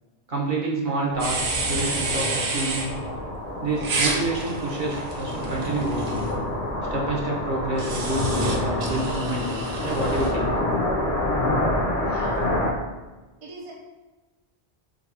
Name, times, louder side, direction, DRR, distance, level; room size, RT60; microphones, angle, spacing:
voice 1, 0.3-2.9 3.6-6.3 6.9-10.5, right 2 dB, 55° right, -3 dB, 1.1 m, -28 dB
sound 1, 1.1-12.7, left 1 dB, 40° left, 0.7 m, -27 dB
sound 2, 1.2-2.9 3.8-6.3 7.8-10.3, right 3 dB, 90° right, 1.0 m, -30 dB
voice 2, 12.0-12.5 13.4-13.7, right 1 dB, 40° right, -2 dB, 0.6 m, -40 dB
5.1 x 2.3 x 4.1 m, 1.2 s
omnidirectional pair, 1.0 m